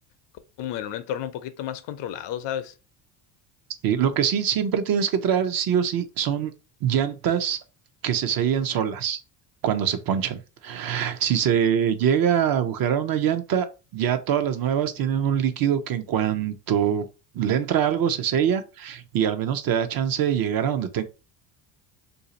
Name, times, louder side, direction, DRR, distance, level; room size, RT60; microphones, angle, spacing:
voice 1, 0.6-2.7, left 10 dB, 60° left, 0.6 m, -32 dB
voice 2, 3.8-6.5 6.8-7.6 8.0-9.2 9.6-13.7 13.9-17.1 17.3-21.0, right 8 dB, 45° right, 0.6 m, -24 dB
2.7 x 2.4 x 4.0 m
supercardioid pair, 95°, 50 cm